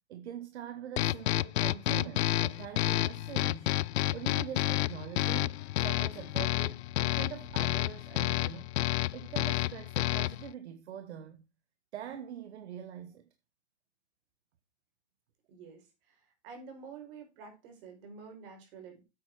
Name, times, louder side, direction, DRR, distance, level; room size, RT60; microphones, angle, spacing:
voice 1, 0.1-3.7 4.1-8.7 9.1-11.4 11.9-13.3, right 9 dB, 75° right, 1.4 m, -43 dB
sound 1, 1.0-10.5, left 16 dB, 70° left, 0.5 m, -30 dB
voice 2, 15.5-19.0, right 5 dB, 55° right, 4.9 m, -49 dB
8.7 x 8.6 x 4.7 m
hypercardioid pair, 140°, 34 cm